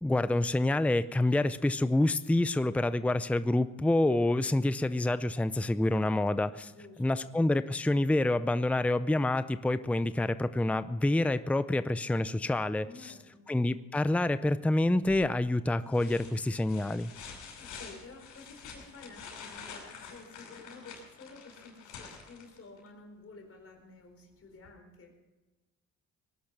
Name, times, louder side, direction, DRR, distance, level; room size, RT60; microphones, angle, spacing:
voice 1, 0.0-6.7 7.0-13.1 13.5-17.1, left 2 dB, 5° left, 13 dB, 0.6 m, -27 dB
voice 2, 6.6-7.3 12.8-13.5 17.3-25.1, left 3 dB, 50° left, 3 dB, 4.5 m, -52 dB
sound 1, 15.1-15.4 15.9-22.9 24.6-24.7, left 6 dB, 85° left, 5.7 m, -48 dB
19.0 x 11.5 x 6.1 m, 1.1 s
cardioid pair, 90°, 30 cm